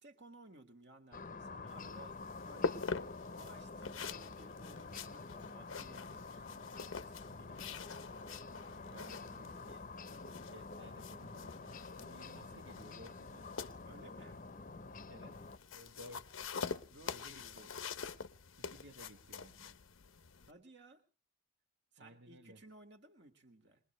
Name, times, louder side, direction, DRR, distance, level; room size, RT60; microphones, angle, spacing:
voice 1, 0.0-2.8 3.3-7.8 8.9-9.9 12.5-12.6 13.8-14.4 16.9-17.7 20.5-21.0 21.9-23.8, right 1 dB, 60° right, 1.7 m, -59 dB
sound 1, 1.1-15.6, left 3 dB, 40° left, 0.7 m, -48 dB
sound 2, 1.7-20.5, left 4 dB, 85° left, 0.8 m, -45 dB
voice 2, 8.8-9.8 10.5-13.6 15.1-15.4 15.7-16.4 17.1-17.7 18.6-19.8 22.0-22.6, equal, 75° right, 1.1 m, -57 dB
22.0 x 20.0 x 3.1 m
head